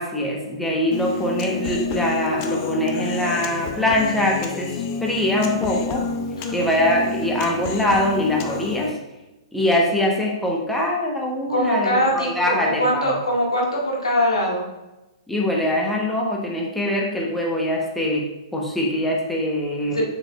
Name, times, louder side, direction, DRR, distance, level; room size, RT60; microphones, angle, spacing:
voice 1, 0.0-6.1 6.5-9.0 9.5-13.1 15.3-20.0, left 1 dB, 5° left, -2 dB, 1.2 m, -23 dB
Human voice, 0.9-8.9, left 5 dB, 35° left, 0.6 m, -29 dB
voice 2, 6.4-6.8 11.5-14.6 19.8-20.0, equal, 75° left, -3 dB, 2.0 m, -22 dB
7.0 x 6.3 x 2.5 m, 1.0 s
figure-of-eight pair, 115°, 3 cm